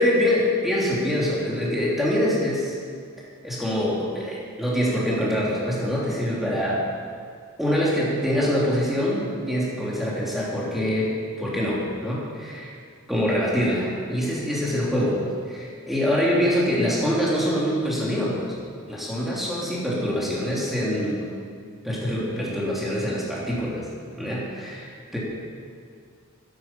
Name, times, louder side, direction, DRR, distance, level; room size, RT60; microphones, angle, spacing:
voice 1, 0.0-2.7 3.2-6.8 7.6-11.1 11.4-12.7 13.1-15.2 15.5-18.5 18.9-21.2 21.8-23.9 24.2-25.2, equal, ahead, -6 dB, 3.2 m, -24 dB
13.5 x 12.0 x 5.7 m, 2.2 s
head